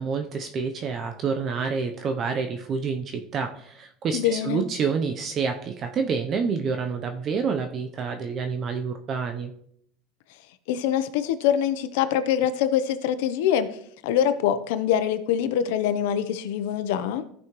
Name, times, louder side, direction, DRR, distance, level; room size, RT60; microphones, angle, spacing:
voice 1, 0.0-9.5, right 5 dB, 35° right, 6 dB, 0.7 m, -28 dB
voice 2, 4.1-4.6 10.7-13.7 14.0-17.2, left 9 dB, 80° left, 11 dB, 0.8 m, -24 dB
15.0 x 5.5 x 3.1 m, 0.68 s
supercardioid pair, 135°, 0 cm